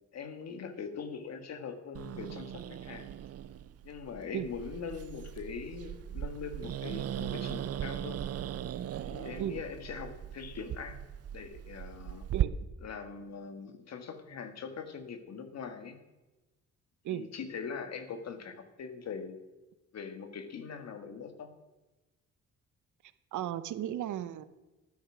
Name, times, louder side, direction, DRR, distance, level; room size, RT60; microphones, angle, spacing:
voice 1, 0.1-3.1 3.8-8.2 9.1-11.0 11.3-12.3 12.8-16.0 17.1-19.4 19.9-21.5, left 6 dB, 60° left, 8 dB, 1.8 m, -42 dB
Growling, 1.9-12.4, right 11 dB, 55° right, 0.6 m, -38 dB
voice 2, 23.3-24.4, right 12 dB, 75° right, 13 dB, 0.9 m, -35 dB
12.5 x 9.7 x 6.2 m, 1.1 s
cardioid pair, 90°, 30 cm